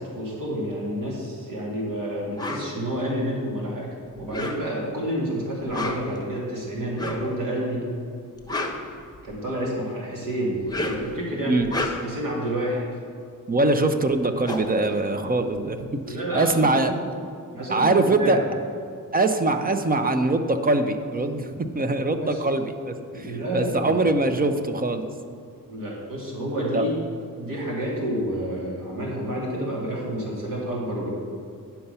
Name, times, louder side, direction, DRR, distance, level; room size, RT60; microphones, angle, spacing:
voice 1, 0.0-3.9 4.2-7.9 9.2-11.7 12.0-12.8 16.0-16.9 17.5-18.5 22.1-22.4 23.1-24.0 25.7-26.9 27.3-31.1, equal, 70° right, -4 dB, 2.6 m, -29 dB
sound 1, 2.4-2.7 4.2-4.9 5.6-6.2 6.9-7.3 8.2-9.5 10.5-11.1 11.6-12.2 13.8-13.9 14.1-15.8, left 2 dB, 10° left, 1.0 m, -32 dB
voice 2, 13.5-16.9 17.7-18.4 19.1-25.1 26.7-26.8, right 2 dB, 25° right, 8 dB, 0.7 m, -23 dB
10.0 x 5.8 x 5.5 m, 2.3 s
cardioid pair, 100°, 34 cm